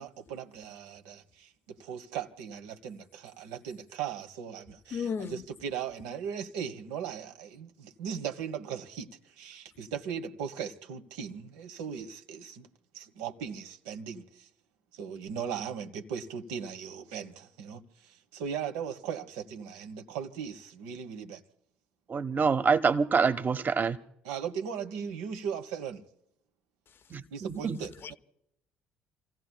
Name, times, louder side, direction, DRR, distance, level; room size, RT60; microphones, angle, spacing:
voice 1, 0.0-9.1 9.4-12.7 12.9-14.5 14.9-21.4 24.2-26.0 27.3-28.1, right 7 dB, 80° right, 1.3 m, -38 dB
voice 2, 4.9-5.5 28.0-28.1, left 7 dB, 45° left, 0.7 m, -34 dB
voice 3, 22.1-24.0 27.4-27.8, right 5 dB, 40° right, 1.2 m, -26 dB
29.0 x 16.0 x 2.3 m
hypercardioid pair, 60°, 5 cm